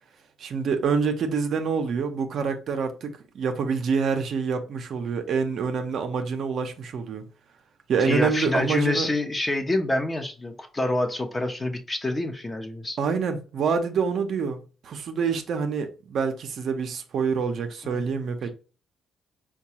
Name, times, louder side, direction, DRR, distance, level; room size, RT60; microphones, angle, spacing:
voice 1, 0.4-7.2 7.9-9.1 13.0-18.5, right 5 dB, 65° right, 0.6 m, -26 dB
voice 2, 8.1-13.0 17.8-18.1, left 2 dB, 20° left, 0.8 m, -27 dB
4.5 x 2.3 x 2.8 m
cardioid pair, 90°, 0 cm